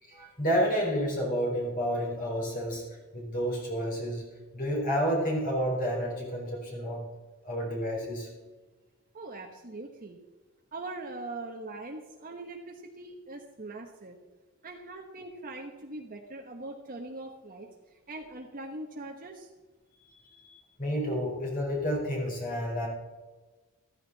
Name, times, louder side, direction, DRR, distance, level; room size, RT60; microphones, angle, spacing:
voice 1, 0.0-2.8 3.1-4.2 4.5-7.1 7.4-8.3 20.4-20.5 20.8-22.9, equal, 40° left, -2 dB, 4.5 m, -30 dB
voice 2, 9.1-10.2 10.7-14.2 14.6-19.5, right 2 dB, 40° right, 1 dB, 1.2 m, -42 dB
14.5 x 14.0 x 4.1 m, 1.2 s
head